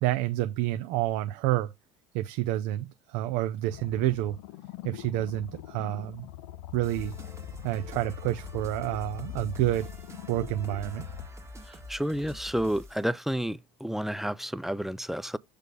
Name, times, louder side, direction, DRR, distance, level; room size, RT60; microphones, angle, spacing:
voice 1, 0.0-1.7 2.1-4.4 4.8-6.3 6.7-7.1 7.6-9.9 10.3-11.1, right 15 dB, 60° right, 0.6 m, -29 dB
sound 1, 3.7-11.3, left 14 dB, 70° left, 0.8 m, -42 dB
sound 2, 6.8-13.1, left 1 dB, 20° right, 1.4 m, -46 dB
voice 2, 11.7-15.4, equal, ahead, 0.4 m, -30 dB
6.5 x 3.4 x 5.3 m
hypercardioid pair, 85°, 15 cm